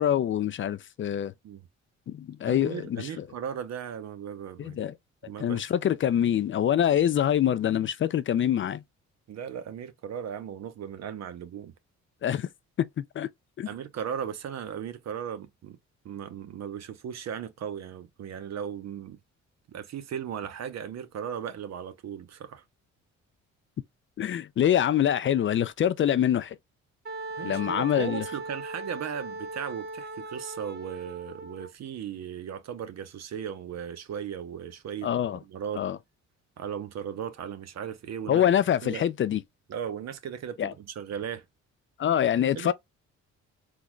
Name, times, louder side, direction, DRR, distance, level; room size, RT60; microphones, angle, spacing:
voice 1, 0.0-1.3 2.1-3.3 4.6-4.9 5.4-8.8 12.2-12.5 12.8-13.3 13.6-13.7 24.2-26.6 27.4-28.2 35.0-35.4 35.8-36.0 38.3-39.4 40.6-40.7 42.0-42.7, left 10 dB, 40° left, 0.4 m, -25 dB
voice 2, 2.5-4.8 5.2-5.7 9.3-11.7 13.6-15.8 16.0-19.2 19.7-22.6 27.4-35.1 35.5-35.8 36.6-38.4 38.8-39.1 39.7-41.4 42.5-42.7, right 8 dB, 60° right, 0.8 m, -37 dB
Wind instrument woodwind instrument, 27.0-31.7, right 2 dB, 35° right, 0.8 m, -38 dB
3.8 x 3.1 x 2.2 m
cardioid pair, 90°, 30 cm